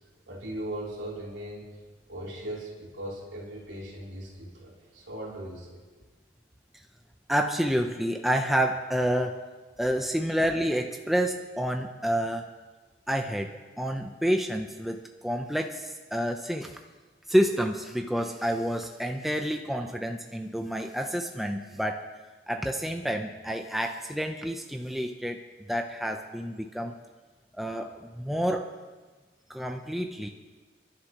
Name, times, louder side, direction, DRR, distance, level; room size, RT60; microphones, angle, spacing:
voice 1, 0.3-1.7 2.1-5.8, right 1 dB, 70° right, -4 dB, 3.6 m, -38 dB
voice 2, 7.3-9.4 9.8-12.5 13.1-13.5 13.8-16.8 17.3-22.1 22.5-25.4 25.7-27.0 27.5-28.7 29.5-30.3, equal, ahead, 3 dB, 0.6 m, -29 dB
30.0 x 11.5 x 3.0 m, 1.3 s
head